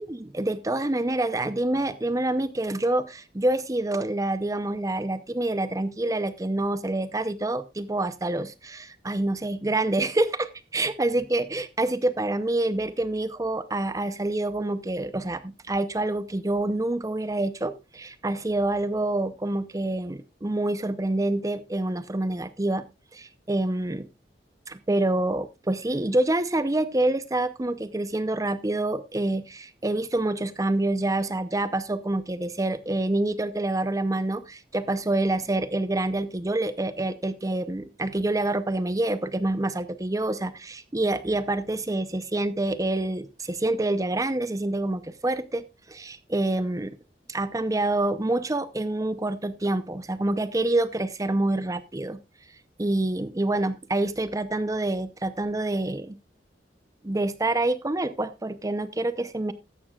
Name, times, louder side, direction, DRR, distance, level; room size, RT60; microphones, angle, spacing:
voice 1, 0.0-22.8 23.1-24.1 24.7-47.0 47.3-52.2 52.8-56.2 57.0-59.5, right 2 dB, 20° right, 13 dB, 0.6 m, -27 dB
15.0 x 11.0 x 2.3 m, 0.25 s
head